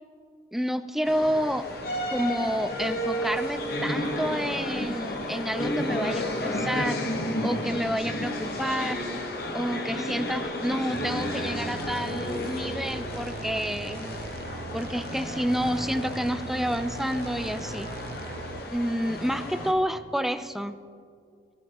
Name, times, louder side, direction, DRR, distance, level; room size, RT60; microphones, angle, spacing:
voice 1, 0.5-1.7 2.1-7.0 7.4-9.0 9.5-14.2 14.7-17.9 18.7-20.8, equal, ahead, 10 dB, 0.4 m, -29 dB
sound 1, 1.1-19.7, left 1 dB, 60° left, 1.2 m, -32 dB
sound 2, 10.9-18.6, right 4 dB, 60° right, 0.5 m, -40 dB
19.5 x 12.0 x 3.0 m, 2.2 s
head